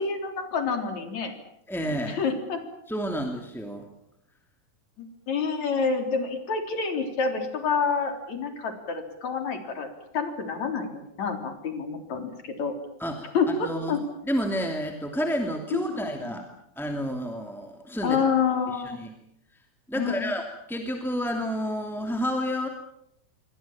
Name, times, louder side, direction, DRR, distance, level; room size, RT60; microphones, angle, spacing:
voice 1, 0.0-1.3 2.1-2.6 5.0-9.9 10.1-12.7 13.3-14.0 15.7-16.0 16.3-16.4 18.0-19.0 20.0-20.3, left 5 dB, 50° left, 6 dB, 4.7 m, -28 dB
voice 2, 1.7-2.2 2.9-3.8 13.0-13.3 13.6-14.0 14.2-16.4 16.8-18.2 18.7-19.1 19.9-22.7, equal, ahead, 3 dB, 1.9 m, -30 dB
28.0 x 24.0 x 7.5 m, 0.75 s
omnidirectional pair, 4.4 m